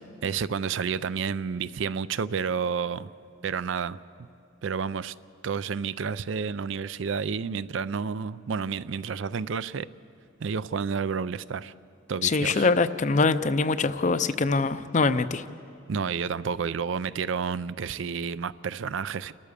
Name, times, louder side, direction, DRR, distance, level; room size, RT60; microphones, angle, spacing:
voice 1, 0.2-3.1 3.4-4.0 4.6-5.1 5.4-9.9 10.4-11.7 12.1-12.7 15.9-19.3, right 6 dB, 60° right, 16 dB, 0.4 m, -30 dB
voice 2, 12.2-15.4, left 4 dB, 35° left, 13 dB, 0.5 m, -23 dB
29.0 x 13.5 x 6.8 m, 2.7 s
head